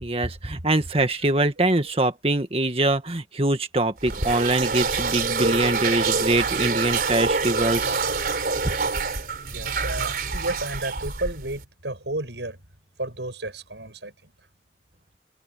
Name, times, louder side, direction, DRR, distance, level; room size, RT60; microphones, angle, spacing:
voice 1, 0.0-8.0, right 2 dB, 35° right, 1.9 m, -23 dB
sound 1, 4.0-11.6, right 4 dB, 55° right, 4.3 m, -26 dB
voice 2, 9.5-12.6 13.0-14.3, right 2 dB, 80° right, 7.7 m, -32 dB
head